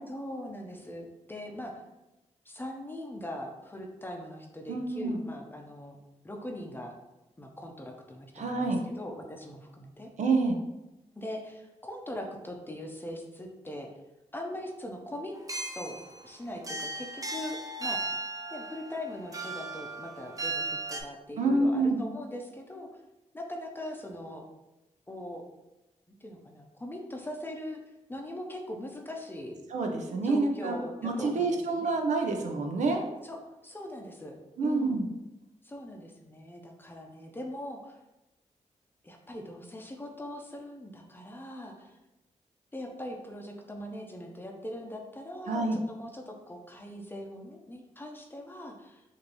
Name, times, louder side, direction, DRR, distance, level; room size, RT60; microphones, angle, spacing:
voice 1, 0.1-1.8 2.5-6.0 6.2-7.0 7.4-10.1 11.1-13.9 14.3-15.3 15.8-16.0 16.2-18.0 18.5-22.9 23.3-24.4 25.1-25.4 26.2-27.8 28.1-29.5 30.2-32.0 33.2-34.4 34.6-35.0 35.6-38.0 39.0-42.0 42.7-49.0, left 1 dB, 15° left, 2 dB, 0.7 m, -41 dB
voice 2, 4.7-5.2 8.4-8.8 10.2-10.6 21.4-22.0 29.7-30.7 31.0-33.0 34.6-35.1 45.5-45.8, right 3 dB, 70° right, 3 dB, 0.6 m, -27 dB
sound 1, 15.3-21.0, right 2 dB, 30° right, 0.6 m, -36 dB
5.1 x 2.7 x 3.0 m, 0.98 s
cardioid pair, 85°, 13 cm